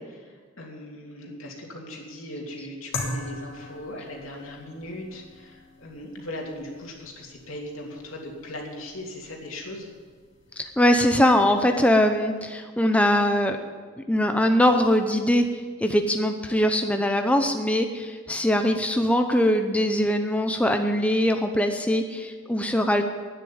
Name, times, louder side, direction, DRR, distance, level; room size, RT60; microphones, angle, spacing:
voice 1, 0.0-9.9, left 1 dB, 85° left, 0 dB, 2.9 m, -39 dB
sound 1, 2.9-11.8, left 2 dB, 65° left, 2.5 m, -41 dB
voice 2, 10.6-13.6 14.1-15.5 15.8-23.0, left 1 dB, 5° left, 5 dB, 0.7 m, -22 dB
11.0 x 9.9 x 8.8 m, 1.5 s
head